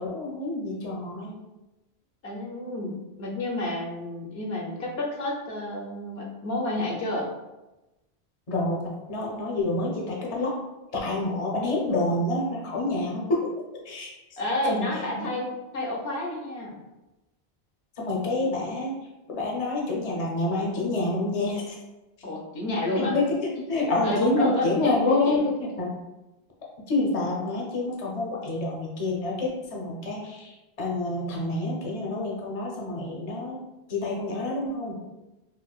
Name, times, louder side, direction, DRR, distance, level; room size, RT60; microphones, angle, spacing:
voice 1, 0.0-1.4 8.5-10.5 10.9-13.5 13.8-14.4 14.7-15.3 18.0-19.0 19.3-21.7 22.9-25.9 26.9-33.6 33.9-35.0, left 2 dB, 40° left, -3 dB, 0.7 m, -28 dB
voice 2, 2.2-7.3 14.4-16.8 22.2-23.2 23.7-25.5, left 1 dB, 70° left, -2 dB, 0.9 m, -30 dB
4.5 x 2.1 x 2.3 m, 1.0 s
omnidirectional pair, 1.1 m